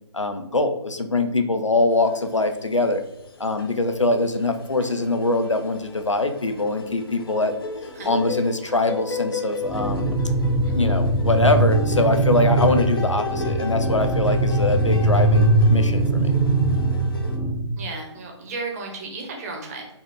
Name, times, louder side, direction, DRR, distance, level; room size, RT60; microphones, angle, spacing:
voice 1, 0.1-3.0 3.4-7.5 8.0-10.2 10.7-16.4, left 2 dB, 90° left, 7 dB, 0.6 m, -23 dB
sound 1, 2.1-2.9 3.2-17.4, left 3 dB, 50° left, 0.7 m, -35 dB
sound 2, 9.6-17.6, right 2 dB, 5° left, 0.6 m, -21 dB
voice 2, 17.8-19.9, right 3 dB, 30° right, 0 dB, 1.1 m, -34 dB
4.2 x 2.4 x 3.9 m, 0.89 s
figure-of-eight pair, 140°, 15 cm